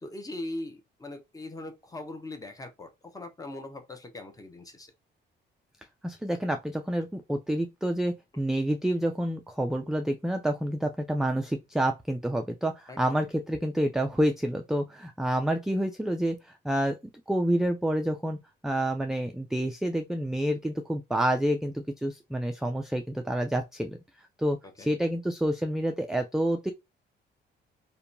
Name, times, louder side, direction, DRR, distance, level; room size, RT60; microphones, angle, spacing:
voice 1, 0.0-4.9 12.9-13.2 24.8-24.9, left 2 dB, 15° left, 0.7 m, -40 dB
voice 2, 6.0-17.0 17.3-18.4 18.6-24.0 24.4-26.7, right 1 dB, ahead, 0.3 m, -28 dB
2.7 x 2.2 x 2.5 m
cardioid pair, 90°, 20 cm